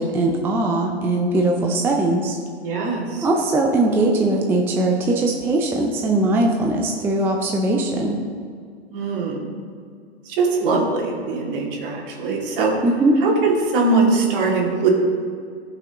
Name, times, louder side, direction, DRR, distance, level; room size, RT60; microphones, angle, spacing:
voice 1, 0.0-2.4 3.2-8.2 12.8-13.1, right 2 dB, 5° right, 1 dB, 0.4 m, -20 dB
voice 2, 2.6-3.3 8.9-9.5 10.3-12.7 13.2-14.9, right 3 dB, 55° right, -2 dB, 2.4 m, -21 dB
15.0 x 5.9 x 3.0 m, 2.1 s
hypercardioid pair, 125°, 34 cm